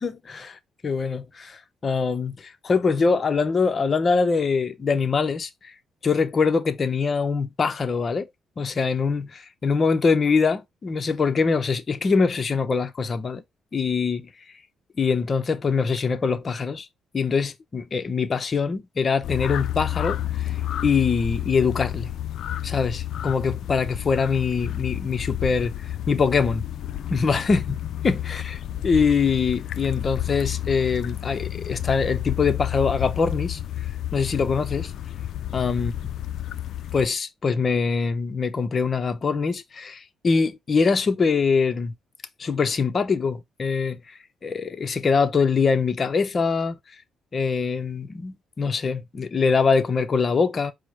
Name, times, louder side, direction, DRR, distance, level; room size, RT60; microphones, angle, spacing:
voice 1, 0.0-0.6 0.8-5.7 6.0-8.3 8.6-13.4 13.7-14.3 15.0-16.9 17.1-20.5 20.8-22.1 22.6-25.7 26.1-26.6 27.1-27.8 28.0-28.4 28.8-33.6 34.1-34.9 35.5-35.9 36.9-41.9 42.4-44.0 44.4-46.8 47.3-50.7, left 5 dB, 40° left, 0.8 m, -23 dB
sound 1, 19.2-37.1, left 12 dB, 70° left, 0.4 m, -30 dB
4.7 x 2.1 x 4.6 m
cardioid pair, 90°, 0 cm